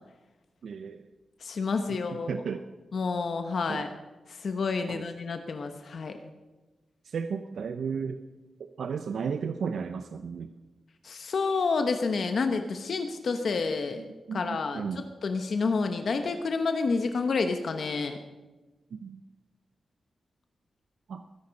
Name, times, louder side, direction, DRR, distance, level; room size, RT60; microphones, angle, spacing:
voice 1, 0.6-1.0 1.9-2.6 3.7-3.9 4.9-5.0 7.0-8.2 8.6-10.5 13.9-15.1 18.9-19.2 21.1-21.2, right 6 dB, 75° right, 9 dB, 0.6 m, -34 dB
voice 2, 1.4-2.3 2.9-3.9 4.3-6.2 11.0-14.0 14.3-14.8 15.2-18.2, left 4 dB, 55° left, 7 dB, 1.0 m, -29 dB
21.5 x 10.5 x 5.3 m, 1.2 s
wide cardioid pair, 160°, 0 cm